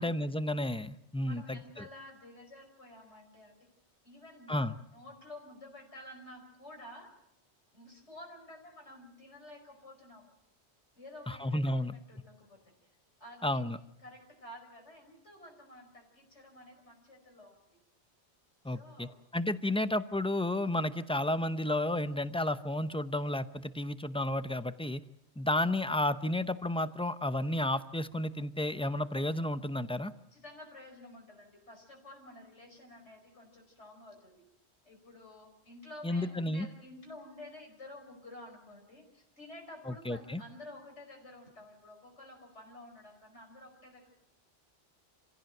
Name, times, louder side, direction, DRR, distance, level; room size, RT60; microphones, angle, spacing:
voice 1, 0.0-1.9 4.5-4.7 11.3-11.9 13.4-13.8 18.6-25.0 25.4-30.1 36.0-36.7 39.9-40.4, left 1 dB, 5° left, 12 dB, 0.6 m, -32 dB
voice 2, 1.2-3.6 4.0-7.1 7.7-10.3 11.0-12.6 13.2-13.6 14.0-17.6 18.6-19.1 30.3-34.4 34.8-44.1, left 1 dB, 85° left, 2 dB, 5.4 m, -51 dB
26.5 x 16.0 x 7.8 m, 0.80 s
omnidirectional pair, 1.1 m